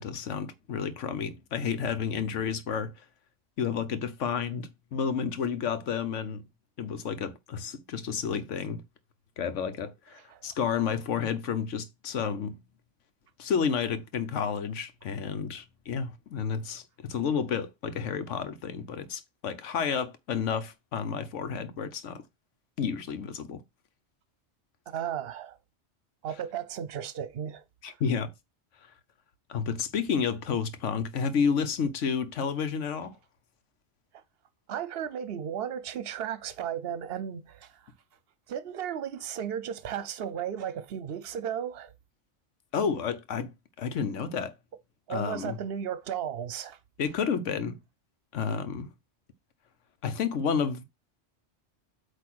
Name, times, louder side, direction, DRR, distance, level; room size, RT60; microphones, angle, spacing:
voice 1, 0.0-2.9 3.6-6.4 6.8-8.8 9.4-12.6 13.4-22.2 22.8-23.6 27.8-28.3 29.5-33.1 42.7-44.5 45.1-45.6 47.0-47.8 48.3-48.9 50.0-50.8, left 6 dB, 90° left, 1.2 m, -31 dB
voice 2, 24.9-25.6 26.2-28.0 34.7-37.7 38.5-41.9 45.1-46.8, right 9 dB, 60° right, 0.9 m, -35 dB
8.4 x 2.9 x 6.1 m
omnidirectional pair, 1.2 m